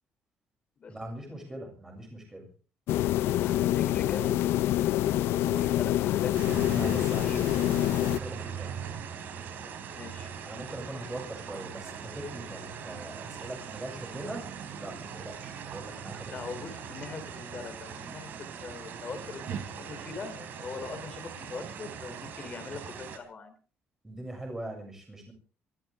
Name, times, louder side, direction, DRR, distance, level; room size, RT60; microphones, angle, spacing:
voice 1, 0.9-2.5 5.4-5.9 6.4-8.8 10.5-16.8 24.0-25.3, right 1 dB, 10° right, 1 dB, 7.2 m, -42 dB
sound 1, 2.9-8.2, left 13 dB, 80° left, 0.7 m, -26 dB
voice 2, 3.3-4.4 5.6-6.3 6.7-7.4 9.9-10.5 16.2-18.3 18.6-23.5, left 5 dB, 30° left, 9 dB, 3.3 m, -41 dB
sound 2, 6.3-23.2, right 7 dB, 55° right, 3.4 m, -41 dB
24.5 x 15.0 x 3.7 m, 0.39 s
cardioid pair, 175°, 4 cm